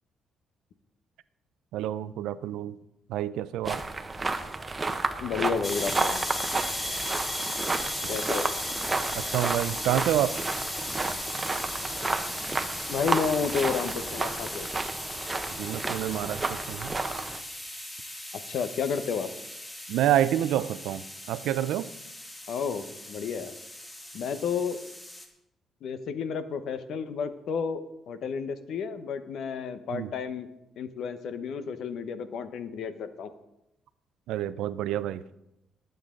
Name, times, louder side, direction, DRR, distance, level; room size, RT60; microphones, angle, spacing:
voice 1, 1.7-2.8 3.1-3.8 8.0-8.1 9.1-10.4 15.6-17.0 19.9-21.9 29.9-30.1 34.3-35.2, right 12 dB, 90° right, 15 dB, 0.5 m, -28 dB
sound 1, 3.6-17.4, right 3 dB, 25° right, 1.0 m, -32 dB
voice 2, 5.2-6.3 8.1-8.5 12.9-14.7 18.5-19.3 22.5-23.5 24.1-24.8 25.8-30.5 30.8-33.3, left 6 dB, 70° left, 11 dB, 1.0 m, -31 dB
sound 2, 5.6-25.3, left 1 dB, 20° left, 2.3 m, -36 dB
21.0 x 8.1 x 3.8 m, 0.87 s
cardioid pair, 90°, 0 cm